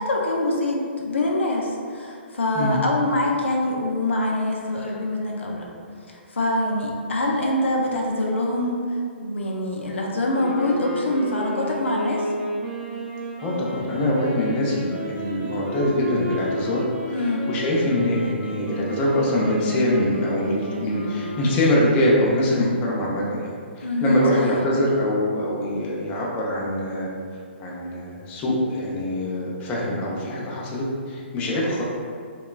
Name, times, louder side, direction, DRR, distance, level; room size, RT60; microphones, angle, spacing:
voice 1, 0.0-5.6 6.1-12.3 17.1-17.5 23.8-24.6, left 1 dB, 75° left, -1 dB, 0.4 m, -24 dB
sound 1, 10.3-22.1, equal, 20° right, 0.6 m, -32 dB
voice 2, 13.4-23.5 23.8-27.1 27.6-31.8, left 1 dB, 25° left, -5 dB, 0.5 m, -24 dB
2.9 x 2.2 x 2.3 m, 2.2 s
figure-of-eight pair, 130°, 7 cm